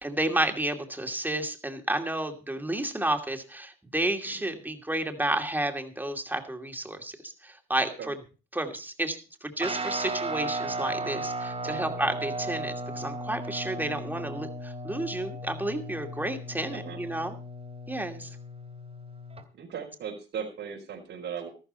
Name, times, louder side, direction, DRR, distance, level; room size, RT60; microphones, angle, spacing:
voice 1, 0.0-8.1 8.5-17.3 17.9-18.3, right 1 dB, 10° right, 4 dB, 2.5 m, -31 dB
voice 2, 7.8-8.1 11.6-11.9 16.7-17.0 19.5-21.5, right 7 dB, 75° right, -5 dB, 4.5 m, -38 dB
Guitar, 9.6-19.4, right 2 dB, 30° right, 2.8 m, -36 dB
13.5 x 12.5 x 4.4 m, 0.35 s
cardioid pair, 90°, 20 cm